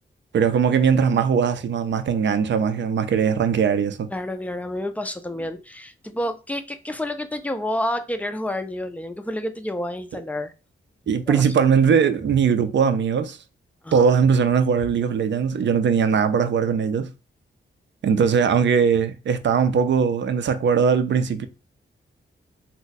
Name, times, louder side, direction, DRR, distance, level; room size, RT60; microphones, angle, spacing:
voice 1, 0.3-4.1 11.1-13.4 13.9-17.1 18.0-21.5, right 6 dB, 60° right, 0.4 m, -20 dB
voice 2, 4.1-10.5 11.3-11.4 13.8-14.1, left 1 dB, 5° left, 0.3 m, -29 dB
2.6 x 2.1 x 4.0 m
wide cardioid pair, 120°, 21 cm